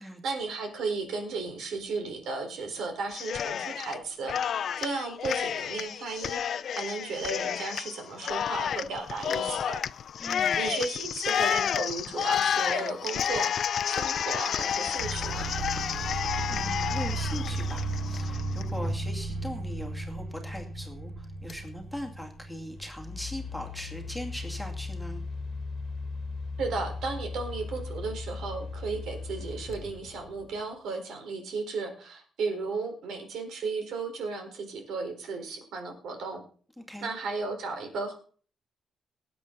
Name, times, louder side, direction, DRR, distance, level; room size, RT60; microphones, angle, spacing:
voice 1, 0.0-4.4 4.8-9.8 10.6-13.5 13.8-15.5 26.6-36.4 37.0-38.1, right 4 dB, 75° right, 4 dB, 4.4 m, -34 dB
Cheering, 3.1-4.0 4.3-18.6, left 8 dB, 55° left, 0.5 m, -30 dB
voice 2, 10.2-10.6 16.5-25.2 36.8-37.1, equal, ahead, 2 dB, 2.4 m, -40 dB
sound 1, 15.0-22.9, right 2 dB, 50° right, 2.9 m, -34 dB
sound 2, 21.5-21.7 22.6-30.6, left 3 dB, 40° left, 1.8 m, -38 dB
19.5 x 8.6 x 4.0 m, 0.42 s
wide cardioid pair, 165°, 0 cm